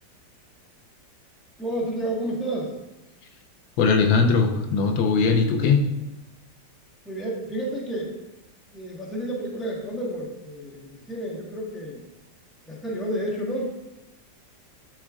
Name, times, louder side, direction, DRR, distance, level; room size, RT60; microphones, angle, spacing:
voice 1, 1.6-2.7 7.0-8.1 8.7-12.0 12.7-13.8, right 1 dB, ahead, -5 dB, 1.1 m, -30 dB
voice 2, 3.8-5.9, left 4 dB, 85° left, 4 dB, 1.4 m, -20 dB
10.5 x 4.4 x 2.4 m, 0.99 s
omnidirectional pair, 2.0 m